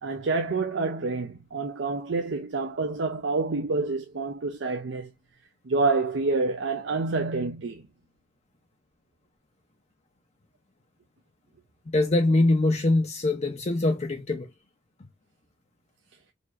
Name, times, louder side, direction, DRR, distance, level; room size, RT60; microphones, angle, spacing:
voice 1, 0.0-5.1 5.7-7.8, right 3 dB, 70° right, 0.6 m, -27 dB
voice 2, 11.9-14.5 15.0-15.1, left 2 dB, 35° left, 0.6 m, -23 dB
4.2 x 2.8 x 2.4 m
head